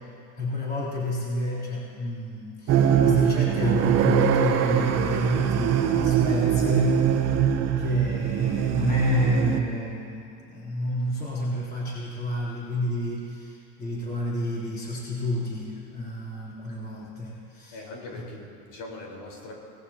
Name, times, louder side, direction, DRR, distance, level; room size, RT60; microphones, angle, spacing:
voice 1, 0.3-7.5 7.8-17.8 18.1-18.2, left 1 dB, 20° left, -7 dB, 3.5 m, -29 dB
sound 1, 2.7-9.6, right 9 dB, 35° right, 1.1 m, -22 dB
voice 2, 17.7-19.5, left 2 dB, 60° left, -2 dB, 4.4 m, -41 dB
24.5 x 19.0 x 2.9 m, 2.5 s
supercardioid pair, 145°, 44 cm